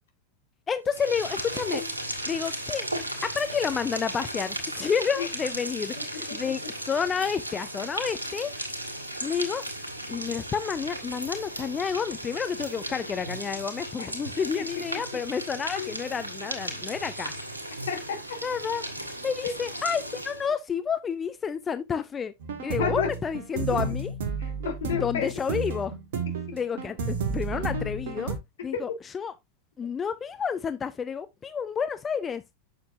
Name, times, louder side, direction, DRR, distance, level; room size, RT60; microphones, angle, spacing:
voice 1, 0.7-1.8 2.3-2.9 3.2-6.6 6.9-8.5 9.2-9.6 10.1-17.3 18.4-18.8 19.2-22.3 22.6-24.1 24.9-25.9 26.5-28.4 28.6-29.3 29.8-32.4, left 6 dB, 20° left, 0.6 m, -30 dB
sound 1, 0.9-20.5, right 1 dB, 80° right, 2.3 m, -36 dB
voice 2, 6.0-6.7 14.0-14.1 14.6-14.7 15.8-15.9 17.9-18.4 19.4-19.5 22.8-23.1 23.5-23.6 24.4-25.3 28.7-29.0, left 7 dB, 60° left, 2.7 m, -32 dB
sound 2, 22.4-28.4, right 4 dB, 55° right, 2.0 m, -31 dB
8.3 x 6.7 x 2.6 m
figure-of-eight pair, 90°, 0 cm